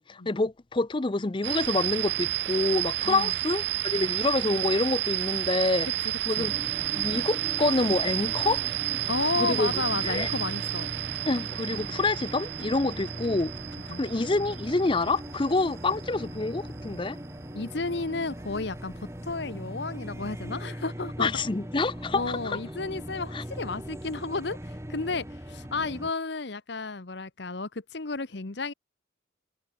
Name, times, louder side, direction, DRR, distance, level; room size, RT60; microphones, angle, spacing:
voice 1, 0.0-5.9 6.3-6.5 6.9-8.6 9.4-9.7 10.0-10.3 11.3-13.5 14.0-17.2 21.2-22.6 23.3-23.4, left 3 dB, 25° left, 0.5 m, -27 dB
sound 1, 1.4-18.1, right 16 dB, 60° right, 0.3 m, -31 dB
sound 2, 5.3-15.5, left 6 dB, 80° left, 3.7 m, -52 dB
sound 3, 6.4-26.1, equal, 15° right, 2.6 m, -40 dB
voice 2, 9.1-10.9 13.9-14.0 17.5-21.3 22.1-28.7, left 3 dB, 60° left, 1.1 m, -32 dB
head